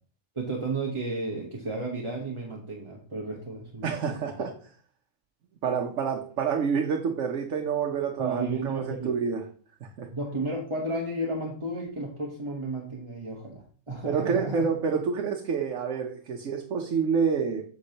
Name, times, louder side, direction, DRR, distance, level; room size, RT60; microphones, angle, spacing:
voice 1, 0.3-3.9 8.2-9.1 10.1-14.7, right 2 dB, 25° right, -2 dB, 1.0 m, -32 dB
voice 2, 3.8-4.5 5.6-9.4 9.8-10.1 14.0-17.6, right 6 dB, 65° right, 2 dB, 1.2 m, -28 dB
8.4 x 7.2 x 2.9 m, 0.43 s
omnidirectional pair, 1.4 m